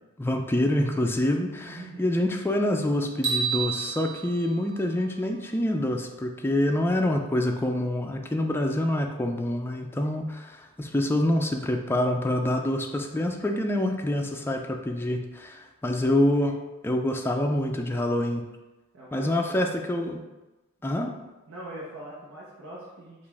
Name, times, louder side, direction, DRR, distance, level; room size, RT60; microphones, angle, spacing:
voice 1, 0.2-16.5 16.8-18.4 19.1-20.2 20.8-21.1, left 1 dB, 10° left, 3 dB, 0.4 m, -26 dB
voice 2, 1.6-2.0 18.9-19.7 21.0-21.1 21.5-23.3, right 1 dB, 75° right, -8 dB, 1.0 m, -42 dB
sound 1, 3.2-5.5, right 6 dB, 60° right, 1.5 m, -31 dB
5.0 x 2.5 x 3.5 m, 1.1 s
head